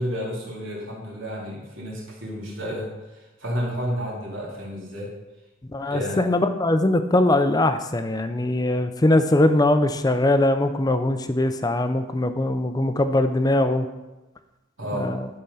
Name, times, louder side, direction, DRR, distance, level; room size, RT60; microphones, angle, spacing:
voice 1, 0.0-5.1 5.8-6.2 14.8-15.1, equal, 80° right, -4 dB, 3.1 m, -31 dB
voice 2, 5.7-13.9 14.9-15.3, left 1 dB, 20° left, 9 dB, 0.5 m, -21 dB
11.5 x 4.4 x 5.6 m, 1.1 s
head